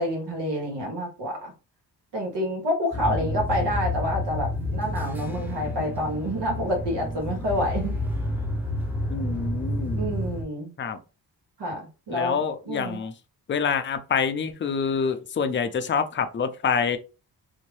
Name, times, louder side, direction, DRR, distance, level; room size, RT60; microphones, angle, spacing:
voice 1, 0.0-1.5 2.1-8.0 10.0-10.7 11.6-13.0, equal, 85° right, 1.2 m, -28 dB
sound 1, 2.9-10.4, left 1 dB, 5° right, 0.7 m, -29 dB
voice 2, 9.1-10.0 10.8-11.0 12.1-13.1 13.5-17.0, left 6 dB, 30° left, 0.4 m, -26 dB
2.7 x 2.1 x 3.1 m
cardioid pair, 70°, 41 cm